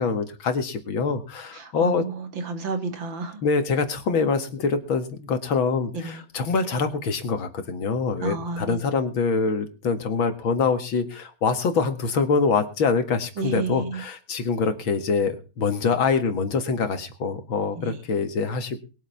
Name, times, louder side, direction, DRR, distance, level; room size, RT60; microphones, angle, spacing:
voice 1, 0.0-2.0 3.4-18.8, left 5 dB, 75° left, 8 dB, 2.6 m, -25 dB
voice 2, 1.5-3.4 5.9-6.2 8.2-8.8 13.4-14.0 17.8-18.0, right 3 dB, 70° right, 8 dB, 2.7 m, -31 dB
21.0 x 8.2 x 5.8 m, 0.35 s
omnidirectional pair, 2.2 m